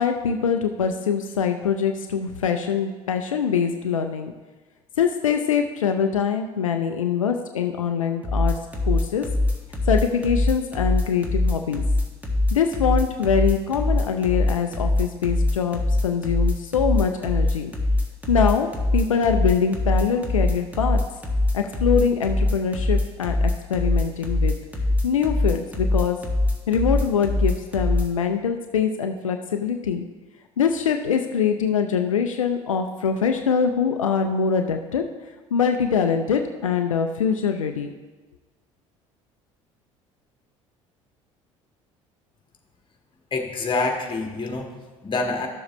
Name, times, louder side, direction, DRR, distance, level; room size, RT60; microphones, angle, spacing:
voice 1, 0.0-4.3 5.0-8.6 8.8-9.2 9.9-11.8 12.5-17.7 18.3-18.7 18.9-21.0 21.5-24.6 25.0-26.2 26.7-30.1 30.6-35.0 35.5-37.9, left 6 dB, 85° left, 6 dB, 0.4 m, -23 dB
sound 1, 8.2-28.1, left 2 dB, 10° right, 1.9 m, -22 dB
voice 2, 43.3-45.5, left 3 dB, 30° left, 2 dB, 1.6 m, -27 dB
12.5 x 7.1 x 3.1 m, 1.2 s
hypercardioid pair, 60°, 17 cm